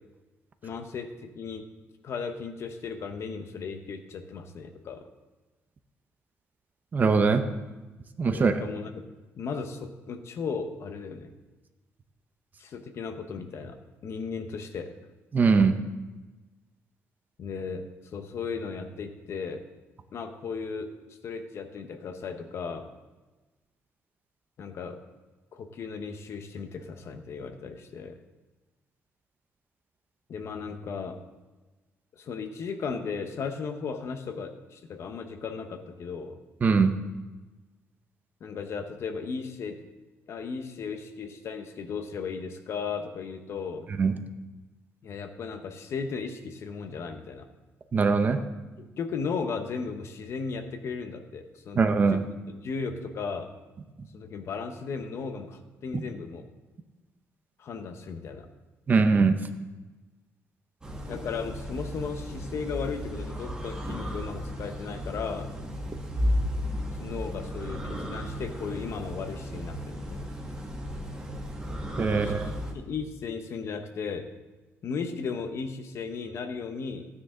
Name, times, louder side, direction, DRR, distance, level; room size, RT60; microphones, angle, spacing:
voice 1, 0.6-1.6 2.0-5.0 8.3-9.0 9.4-11.3 12.6-13.8 14.0-14.9 17.4-17.8 18.1-19.6 20.1-20.9 21.2-22.9 24.6-25.0 25.5-28.2 30.3-31.2 32.1-36.4 38.4-39.8 40.3-43.9 45.0-47.5 48.8-51.8 52.1-53.5 54.1-56.4 57.6-58.5 61.1-65.5 67.0-70.3 72.1-74.3 74.8-77.1, left 5 dB, 55° left, 7 dB, 1.0 m, -36 dB
voice 2, 6.9-7.4 8.2-8.5 15.3-15.7 36.6-36.9 44.0-44.1 47.9-48.4 51.8-52.2 55.9-56.0 58.9-59.4 72.0-72.5, right 4 dB, 30° right, 8 dB, 0.7 m, -21 dB
sound 1, 60.8-72.7, equal, 15° right, 1.8 m, -34 dB
12.5 x 9.7 x 3.8 m, 1.2 s
cardioid pair, 135°, 5 cm